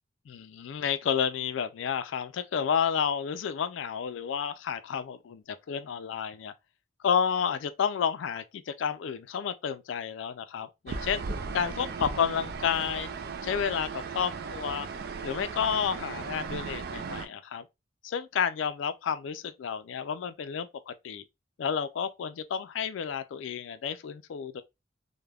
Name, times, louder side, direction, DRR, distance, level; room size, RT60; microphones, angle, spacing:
voice 1, 0.3-6.5 7.0-11.2 11.5-13.1 13.4-14.9 15.2-17.6 18.0-21.2 21.6-24.6, left 7 dB, 75° left, 0.3 m, -31 dB
sound 1, 10.9-17.3, right 4 dB, 50° right, 0.3 m, -37 dB
3.3 x 2.1 x 2.2 m
head